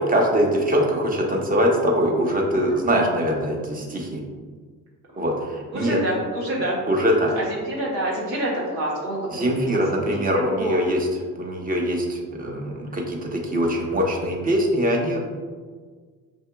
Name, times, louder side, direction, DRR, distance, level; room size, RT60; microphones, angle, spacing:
voice 1, 0.0-4.2 5.2-6.0 6.9-7.3 9.3-11.1 11.4-15.3, equal, 20° right, 0 dB, 0.9 m, -22 dB
voice 2, 5.7-10.8, right 1 dB, 80° right, -5 dB, 1.3 m, -27 dB
5.8 x 2.7 x 2.2 m, 1.5 s
hypercardioid pair, 55°, 44 cm